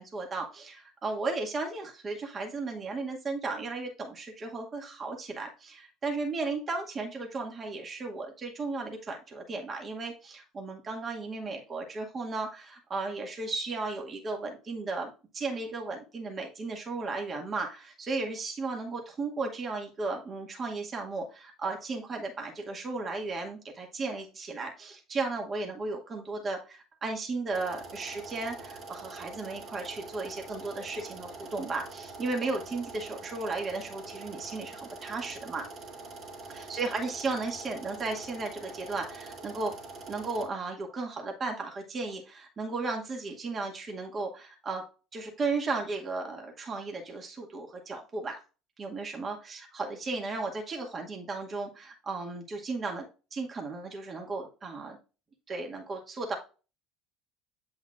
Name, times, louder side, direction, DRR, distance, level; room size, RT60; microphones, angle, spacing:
voice 1, 0.0-35.7 36.5-39.8 40.1-44.9 45.1-48.4 48.8-53.1 53.3-55.0 55.5-56.4, right 3 dB, 35° right, 2 dB, 2.1 m, -35 dB
sound 1, 27.5-40.4, right 3 dB, 55° right, 2.7 m, -45 dB
8.4 x 5.5 x 2.5 m, 0.32 s
hypercardioid pair, 80°, 0 cm